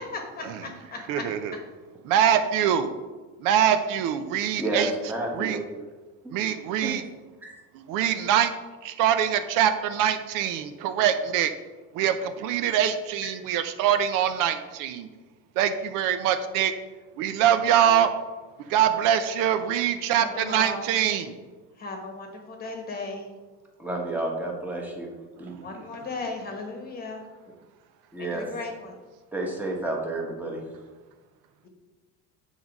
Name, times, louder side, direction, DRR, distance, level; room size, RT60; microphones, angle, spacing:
voice 1, 0.0-1.2 20.3-20.9 21.8-23.3 25.6-27.2 28.2-28.9, left 3 dB, 25° left, 3 dB, 1.1 m, -36 dB
voice 2, 1.1-1.5 2.0-2.9 3.4-4.9 5.3-5.6 6.3-7.0 7.9-8.5 8.8-11.5 11.9-15.1 15.6-16.7 17.2-18.1 18.7-21.3 25.5-25.8, right 9 dB, 70° right, 9 dB, 0.7 m, -24 dB
voice 3, 4.6-5.6 6.2-6.3 6.8-6.9 7.4-7.6 8.0-8.2 13.2-13.3 23.8-25.1 25.4-25.5 28.1-28.5 29.3-30.6, right 2 dB, 5° right, -1 dB, 1.1 m, -30 dB
8.2 x 4.0 x 5.9 m, 1.3 s
cardioid pair, 175°, 34 cm